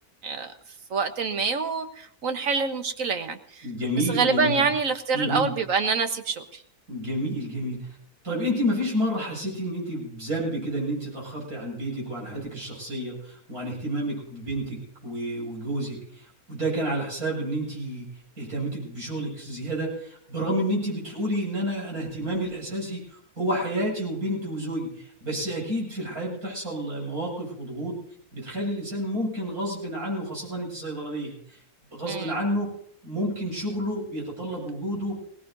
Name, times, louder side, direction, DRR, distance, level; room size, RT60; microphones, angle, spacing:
voice 1, 0.2-0.5 0.9-3.7 4.1-6.6 32.1-32.3, right 5 dB, 60° right, 1.6 m, -26 dB
voice 2, 3.6-4.7 5.1-5.5 6.9-8.0 8.2-18.1 18.4-27.9 28.3-31.6 31.9-32.7 33.0-35.2, equal, 75° right, 8.3 m, -30 dB
21.5 x 18.5 x 2.7 m
omnidirectional pair, 1.6 m